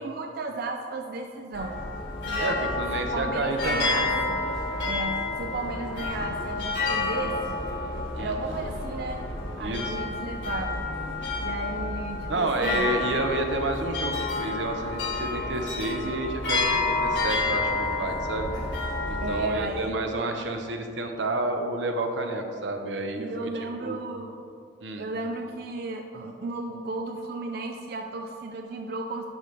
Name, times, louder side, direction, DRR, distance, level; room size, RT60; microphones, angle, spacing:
voice 1, 0.0-1.8 2.3-2.6 2.9-4.4 4.8-7.6 8.2-9.2 9.6-10.8 11.4-12.9 19.2-19.9 23.2-24.3 25.0-29.3, right 2 dB, 60° right, 3 dB, 0.4 m, -34 dB
sound 1, 1.5-19.5, left 3 dB, 80° left, 1.8 m, -29 dB
voice 2, 2.4-4.2 8.1-8.3 9.6-10.0 12.3-18.5 19.1-23.5 23.8-24.0 24.8-25.1, right 2 dB, 85° right, 4 dB, 0.8 m, -30 dB
11.0 x 5.1 x 3.2 m, 2.5 s
head